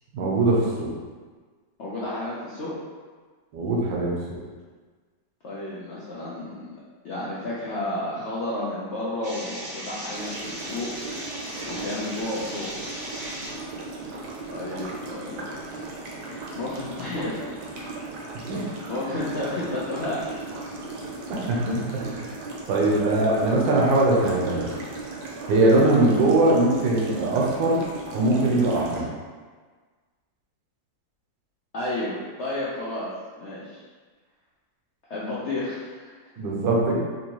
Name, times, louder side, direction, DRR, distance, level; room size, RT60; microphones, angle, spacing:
voice 1, 0.1-0.9 3.5-4.4 18.5-18.6 21.3-22.3 22.7-24.7 25.5-27.8 28.1-29.1 36.4-37.0, right 2 dB, 90° right, -3 dB, 1.5 m, -21 dB
voice 2, 1.8-2.7 5.4-6.7 7.0-10.9 11.3-11.4 11.7-13.0 14.5-15.8 16.3-17.5 18.5-20.4 31.7-33.1 33.4-33.8 35.1-36.3, left 1 dB, 80° left, -8 dB, 0.6 m, -32 dB
sound 1, 9.2-13.5, right 1 dB, 45° right, 0.7 m, -37 dB
sound 2, 10.1-29.0, right 2 dB, 70° right, 1.1 m, -37 dB
4.4 x 2.6 x 2.9 m, 1.5 s
omnidirectional pair, 2.0 m